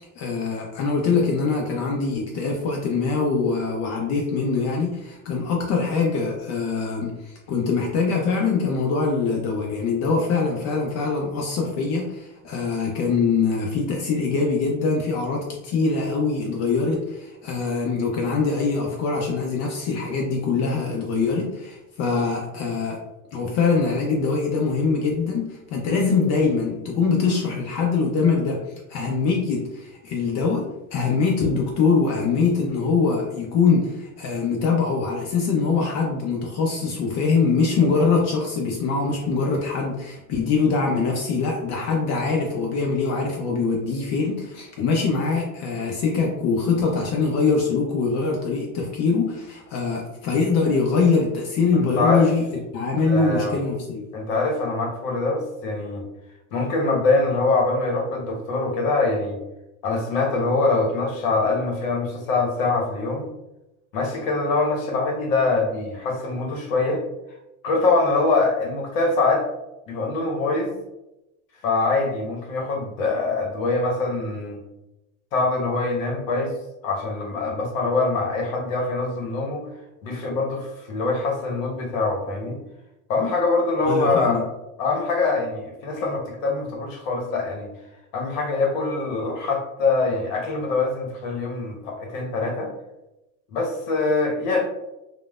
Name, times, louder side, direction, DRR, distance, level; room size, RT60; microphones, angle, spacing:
voice 1, 0.0-23.0 23.3-28.6 28.9-54.0 83.9-84.4, left 4 dB, 40° left, 0 dB, 0.5 m, -23 dB
voice 2, 51.7-52.3 53.0-53.6 54.1-56.0 56.5-59.4 59.8-63.3 63.9-67.0 67.6-69.5 69.9-70.8 71.6-74.6 75.3-76.5 76.8-79.7 80.0-82.6 83.1-84.5 84.8-87.7 88.1-92.7 93.5-94.7, left 3 dB, 65° left, 1 dB, 1.0 m, -24 dB
3.1 x 2.1 x 2.3 m, 0.93 s
hypercardioid pair, 100°, 42 cm